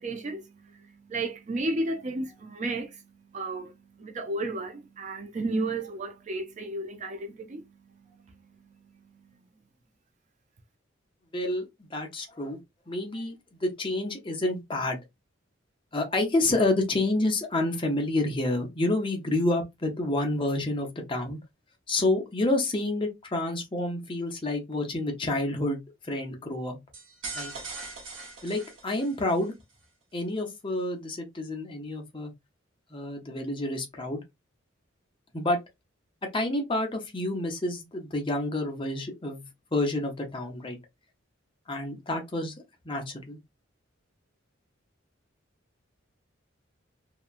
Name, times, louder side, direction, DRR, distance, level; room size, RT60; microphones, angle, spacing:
voice 1, 0.0-3.0 3.3-7.6, right 2 dB, 35° right, 0.4 m, -33 dB
voice 2, 11.3-12.6 12.9-15.0 15.9-21.4 21.9-26.8 27.3-27.5 28.4-29.5 30.1-32.3 32.9-34.2 35.3-35.6 36.3-39.4 39.7-40.8 41.7-42.5 42.8-43.4, left 2 dB, 25° left, 0.6 m, -29 dB
sound 1, 26.9-29.5, right 3 dB, 75° right, 0.9 m, -40 dB
2.8 x 2.2 x 2.4 m
head